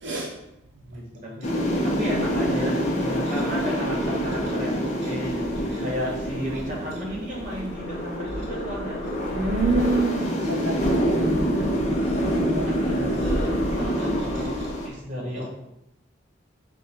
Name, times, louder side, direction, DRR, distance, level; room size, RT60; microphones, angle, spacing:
voice 1, 0.8-1.5 1.8-9.0 12.6-14.5 14.8-15.5, equal, 40° right, -3 dB, 1.1 m, -33 dB
sound 1, 1.4-14.9, equal, 35° left, 0.6 m, -26 dB
voice 2, 9.3-11.6 12.0-12.2 12.4-12.7, right 3 dB, 70° right, -1 dB, 0.5 m, -27 dB
4.8 x 2.2 x 4.3 m, 0.87 s
head